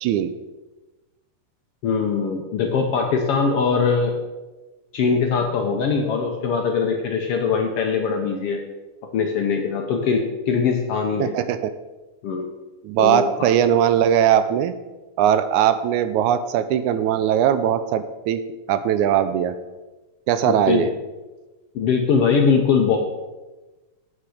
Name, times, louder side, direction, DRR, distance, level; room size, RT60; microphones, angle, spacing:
voice 1, 0.0-0.3 11.2-11.7 12.8-14.7 15.2-18.4 18.7-19.6 20.3-20.9, right 10 dB, 80° right, 11 dB, 1.9 m, -20 dB
voice 2, 1.8-4.1 4.9-8.6 9.1-11.3 12.2-12.5 13.0-13.5 20.5-20.9 21.7-23.0, left 5 dB, 70° left, 3 dB, 1.5 m, -21 dB
9.0 x 8.6 x 4.9 m, 1.2 s
omnidirectional pair, 3.6 m